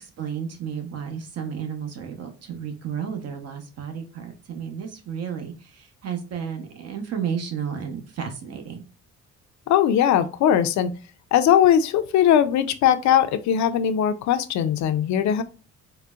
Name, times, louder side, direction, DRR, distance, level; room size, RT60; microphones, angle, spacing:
voice 1, 0.0-8.9, right 7 dB, 55° right, 5 dB, 0.8 m, -32 dB
voice 2, 9.7-10.9 11.3-15.4, left 9 dB, 70° left, 11 dB, 0.5 m, -20 dB
3.8 x 2.1 x 2.3 m, 0.34 s
cardioid pair, 90°, 30 cm